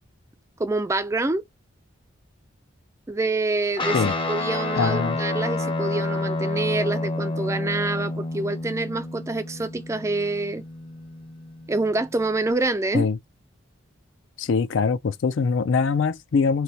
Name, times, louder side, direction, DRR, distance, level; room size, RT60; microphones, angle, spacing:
voice 1, 0.6-1.4 3.1-10.6 11.7-13.1, right 2 dB, 15° right, 0.3 m, -26 dB
Guitar, 3.8-12.5, left 2 dB, 25° left, 0.6 m, -29 dB
voice 2, 4.8-5.2 12.9-13.2 14.4-16.6, left 5 dB, 65° left, 0.4 m, -23 dB
4.2 x 3.2 x 2.8 m
head